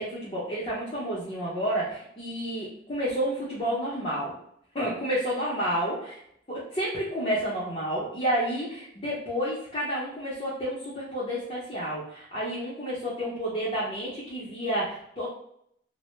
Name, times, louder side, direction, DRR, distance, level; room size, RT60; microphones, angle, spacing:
voice 1, 0.0-4.3 4.7-6.0 6.5-15.3, equal, 30° left, -8 dB, 0.7 m, -30 dB
2.1 x 2.1 x 3.0 m, 0.67 s
head